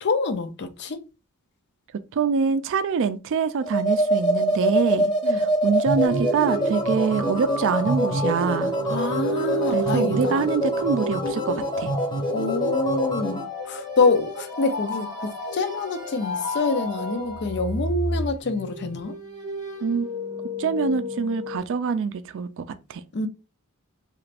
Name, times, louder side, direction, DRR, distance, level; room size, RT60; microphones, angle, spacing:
voice 1, 0.0-1.0 5.2-5.4 8.9-10.4 12.3-15.1 15.5-19.1 23.1-23.3, left 3 dB, 50° left, 0.5 m, -26 dB
voice 2, 2.1-8.7 9.6-11.9 19.8-20.1 20.6-23.0, right 5 dB, 60° right, 0.3 m, -25 dB
sound 1, 3.6-13.4, right 1 dB, 20° left, 0.7 m, -25 dB
sound 2, 6.0-8.0 8.3-12.1 13.7-17.0 17.2-21.6, right 1 dB, 20° right, 0.7 m, -33 dB
sound 3, 7.2-17.9, left 3 dB, 75° left, 1.6 m, -35 dB
3.1 x 2.5 x 3.3 m
head